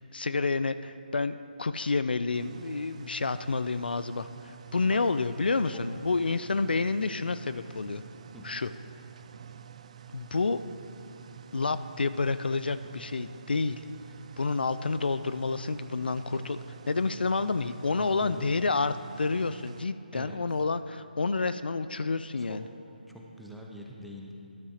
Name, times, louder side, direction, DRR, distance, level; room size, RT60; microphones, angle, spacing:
voice 1, 0.1-8.0 8.4-8.7 10.1-10.6 11.5-13.8 14.4-16.6 16.9-22.6, left 4 dB, 75° left, 13 dB, 0.3 m, -29 dB
sound 1, 2.3-19.8, right 9 dB, 40° right, 0.3 m, -49 dB
voice 2, 18.0-18.6 20.1-20.4 22.4-22.7 23.1-24.4, equal, ahead, -2 dB, 0.7 m, -45 dB
12.5 x 12.0 x 2.8 m, 2.7 s
figure-of-eight pair, 150°, 5 cm